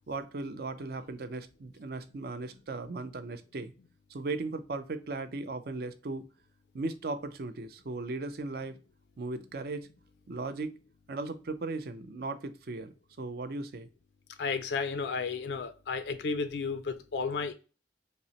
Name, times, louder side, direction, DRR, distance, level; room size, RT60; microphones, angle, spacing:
voice 1, 0.1-3.7 4.1-6.3 6.7-8.8 9.2-9.9 10.3-10.8 11.1-13.9, right 3 dB, 55° right, 0.5 m, -37 dB
voice 2, 14.4-17.5, left 4 dB, 70° left, 0.4 m, -33 dB
5.3 x 2.1 x 2.8 m
head